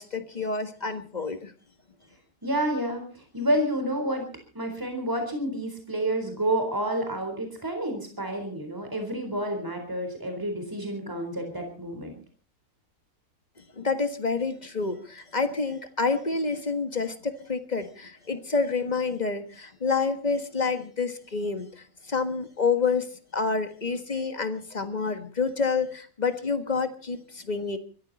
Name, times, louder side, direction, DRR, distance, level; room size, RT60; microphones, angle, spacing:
voice 1, 0.0-1.5 13.7-27.8, left 4 dB, 30° left, 9 dB, 1.5 m, -28 dB
voice 2, 2.4-4.3 4.5-12.2, right 1 dB, 15° right, 4 dB, 4.0 m, -29 dB
23.0 x 14.5 x 4.1 m, 0.39 s
omnidirectional pair, 1.6 m